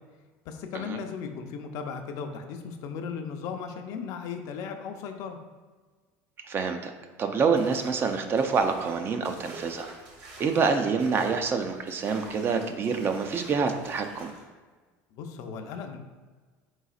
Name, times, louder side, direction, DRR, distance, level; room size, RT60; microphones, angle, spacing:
voice 1, 0.5-5.4 15.1-16.0, left 6 dB, 60° left, 5 dB, 0.5 m, -36 dB
voice 2, 6.5-6.9 7.2-9.9 10.4-14.3, right 5 dB, 35° right, 6 dB, 0.4 m, -26 dB
sound 1, 7.6-14.5, right 2 dB, 70° right, 1.1 m, -48 dB
4.0 x 3.9 x 2.4 m, 1.4 s
supercardioid pair, 115°, 7 cm